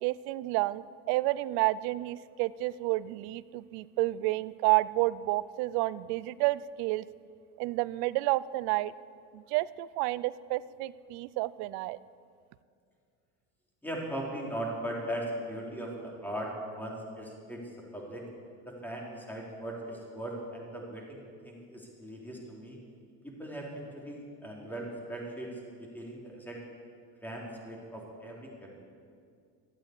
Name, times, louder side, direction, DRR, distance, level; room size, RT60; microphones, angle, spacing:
voice 1, 0.0-7.1 7.6-8.9 9.3-12.0, right 18 dB, 60° right, 19 dB, 0.6 m, -30 dB
voice 2, 13.8-17.6 17.9-18.3 18.6-22.8 23.2-25.5 25.8-26.6 27.2-28.8, right 1 dB, 5° left, -2 dB, 3.8 m, -39 dB
14.0 x 8.9 x 8.2 m, 2.2 s
supercardioid pair, 90°, 44 cm